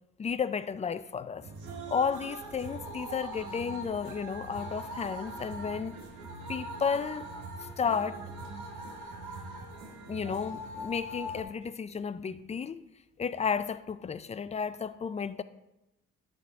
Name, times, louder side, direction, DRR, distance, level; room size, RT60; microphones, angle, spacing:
voice 1, 0.2-1.4 1.9-6.0 6.5-7.3 7.6-8.2 10.1-12.8 13.2-15.4, left 6 dB, 25° left, 0.4 m, -32 dB
sound 1, 1.4-11.4, right 1 dB, 75° right, 1.4 m, -41 dB
9.5 x 3.6 x 5.1 m
cardioid pair, 90°, 30 cm